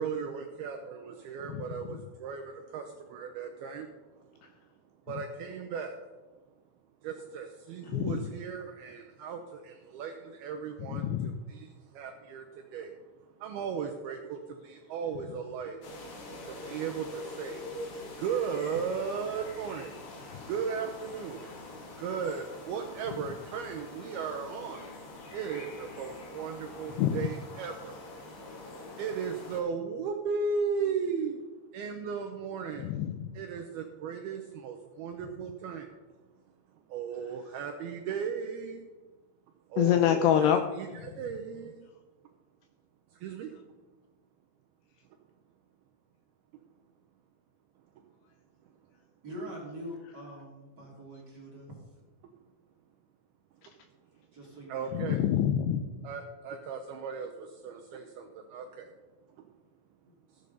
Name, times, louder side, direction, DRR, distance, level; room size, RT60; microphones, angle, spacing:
voice 1, 0.0-3.9 5.1-6.0 7.0-11.0 11.5-12.9 13.4-15.8 16.5-17.6 18.2-20.0 20.5-21.4 22.0-24.9 25.3-28.0 29.0-31.4 31.7-32.9 33.3-35.9 36.9-38.8 39.7-41.8 43.2-43.5 54.7-55.2 56.0-58.9, right 6 dB, 80° right, 3 dB, 2.3 m, -36 dB
voice 2, 7.8-8.2 10.9-11.3 27.0-27.3 32.8-33.3 39.8-40.6 54.9-56.1, left 10 dB, 80° left, 6 dB, 2.4 m, -26 dB
sound 1, 15.8-29.6, left 2 dB, 65° left, 4.4 m, -45 dB
voice 3, 49.2-51.7 54.3-55.0 60.0-60.2, equal, 30° right, -3 dB, 2.1 m, -44 dB
15.5 x 8.1 x 5.3 m, 1.2 s
omnidirectional pair, 5.4 m